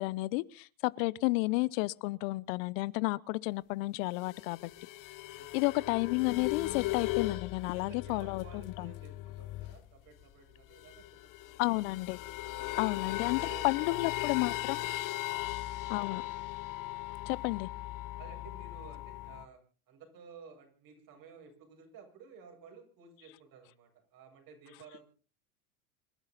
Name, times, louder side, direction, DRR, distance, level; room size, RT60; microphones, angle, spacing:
voice 1, 0.0-4.6 5.5-8.9 11.6-12.2 12.8-14.8 15.9-16.2 17.3-17.7, left 23 dB, 65° left, 0.8 m, -31 dB
sound 1, 4.1-10.0 10.2-10.3 10.5-19.4, left 16 dB, 45° left, 1.2 m, -38 dB
voice 2, 5.3-5.7 7.5-11.6 12.5-14.0 14.4-15.4 15.9-16.3 18.2-19.6 19.9-25.0, right 5 dB, 50° right, 7.9 m, -54 dB
27.0 x 11.5 x 4.0 m
hypercardioid pair, 100°, 43 cm